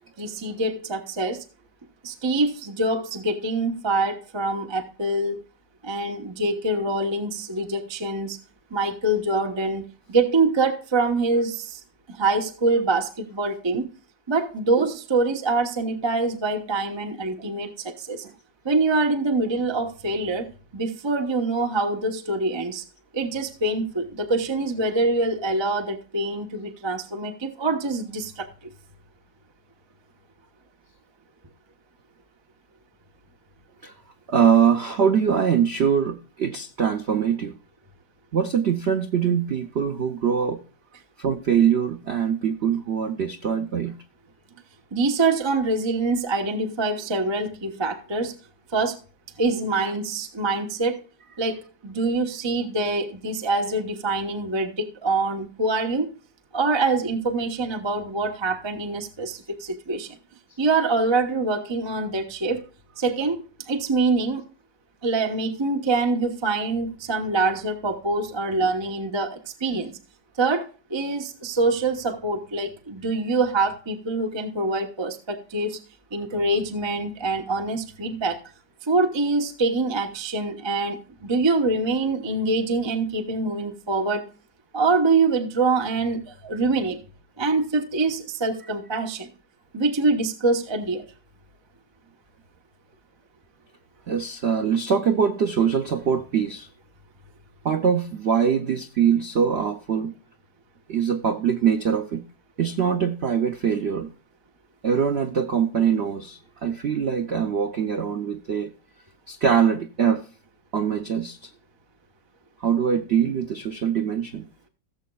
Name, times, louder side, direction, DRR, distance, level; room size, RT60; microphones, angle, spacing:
voice 1, 0.2-1.4 2.0-5.4 5.8-8.4 8.7-11.8 12.1-13.9 14.3-18.2 18.6-20.5 20.7-22.8 23.1-28.5 44.9-48.3 48.7-49.0 49.4-51.0 51.4-56.1 56.5-60.1 60.6-62.6 63.0-64.4 65.0-69.9 70.4-75.8 76.1-78.4 78.8-84.3 84.7-87.0 87.4-89.3 89.7-91.0, right 3 dB, 20° right, 0.8 m, -25 dB
voice 2, 34.3-37.6 38.3-40.6 41.2-44.0 49.8-49.9 68.6-68.7 69.7-69.8 73.1-73.2 94.1-96.7 97.6-100.1 100.9-102.2 102.6-104.1 104.8-108.7 109.3-110.3 110.7-111.5 112.6-114.5, right 7 dB, 65° right, 0.6 m, -23 dB
17.5 x 7.5 x 2.3 m
omnidirectional pair, 2.0 m